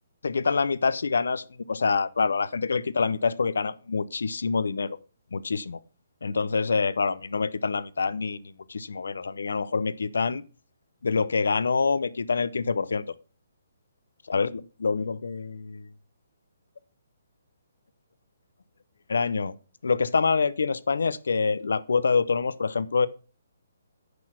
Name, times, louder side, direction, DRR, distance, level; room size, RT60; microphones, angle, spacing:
voice 1, 0.2-5.0 5.3-5.8 6.2-8.4 8.7-10.4 11.0-13.0 14.3-15.9 19.1-19.5 19.8-23.1, left 4 dB, 80° left, 0.6 m, -26 dB
10.5 x 4.1 x 6.2 m
hypercardioid pair, 150°, 0 cm